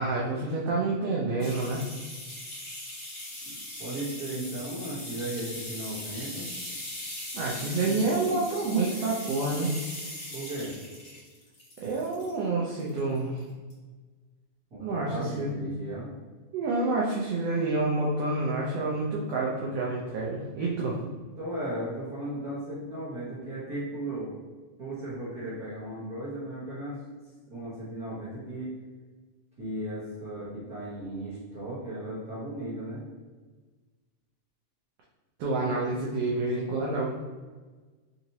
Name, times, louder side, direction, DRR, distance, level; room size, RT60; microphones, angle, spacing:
voice 1, 0.0-1.9 7.3-9.7 11.8-13.4 14.8-15.6 16.5-21.0 35.4-37.1, right 3 dB, 85° right, -4 dB, 1.4 m, -28 dB
rain stick long, 1.4-12.4 12.8-13.4 13.7-13.8, left 1 dB, 45° left, 1.5 m, -40 dB
voice 2, 3.4-6.5 10.3-10.7 14.7-16.1 20.5-20.6 21.4-24.3 24.8-27.0 27.5-28.7 29.6-33.0, right 1 dB, 65° right, -11 dB, 0.9 m, -36 dB
4.9 x 2.9 x 2.7 m, 1.3 s
omnidirectional pair, 3.5 m